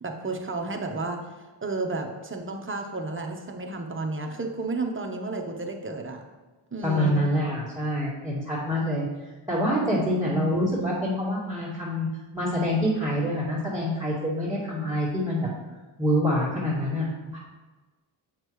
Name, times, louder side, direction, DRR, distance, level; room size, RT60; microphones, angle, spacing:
voice 1, 0.0-1.2 1.6-6.2 6.7-7.3 10.3-10.4, right 3 dB, 25° right, 2 dB, 1.1 m, -32 dB
voice 2, 6.8-9.1 9.5-12.1 12.3-15.5 16.0-17.1 17.3-17.4, equal, 5° right, -8 dB, 2.2 m, -26 dB
7.4 x 5.8 x 3.2 m, 1.2 s
cardioid pair, 60°, 48 cm